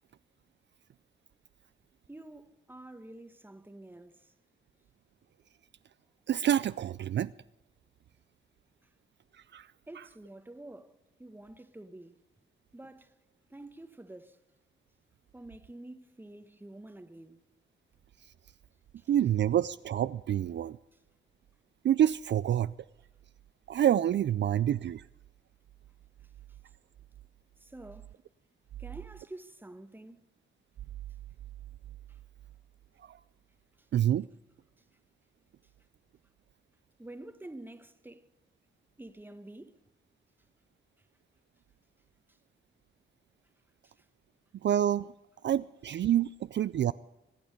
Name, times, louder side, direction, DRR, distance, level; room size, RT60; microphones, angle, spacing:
voice 1, 2.1-4.3 9.9-12.2 12.7-13.1 13.5-14.4 15.3-17.4 19.0-19.1 27.6-28.1 28.8-30.2 32.1-32.2 37.0-38.2 39.0-39.8 43.8-44.0, right 1 dB, 10° right, 1.1 m, -48 dB
voice 2, 6.3-7.3 9.5-9.7 19.1-20.8 21.8-22.7 23.7-25.0 33.1-33.2 33.9-34.3 44.6-45.1 45.4-46.9, right 11 dB, 60° right, 0.4 m, -27 dB
23.5 x 8.7 x 5.2 m
wide cardioid pair, 105°, 21 cm